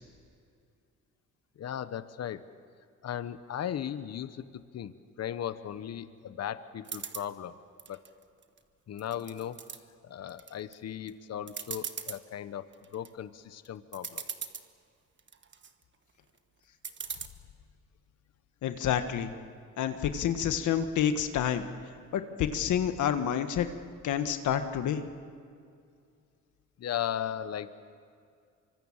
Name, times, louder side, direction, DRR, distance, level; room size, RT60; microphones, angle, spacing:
voice 1, 1.6-2.4 3.0-4.9 5.2-7.6 7.9-8.0 8.9-9.6 10.0-12.7 12.9-14.2 26.8-27.7, left 10 dB, 55° left, 12 dB, 1.1 m, -37 dB
sound 1, 6.8-7.3 7.8-8.6 9.0-9.8 10.3-10.7 11.1-11.2 11.5-12.2 12.7-13.1 13.7-13.8 13.9-14.7 15.2-15.7 16.8-17.3, right 6 dB, 40° right, 1.4 m, -39 dB
voice 2, 18.6-19.3 19.8-21.6 22.1-23.7 24.0-25.0, left 9 dB, 75° left, 8 dB, 1.6 m, -28 dB
25.0 x 24.5 x 7.4 m, 2.3 s
cardioid pair, 90°, 30 cm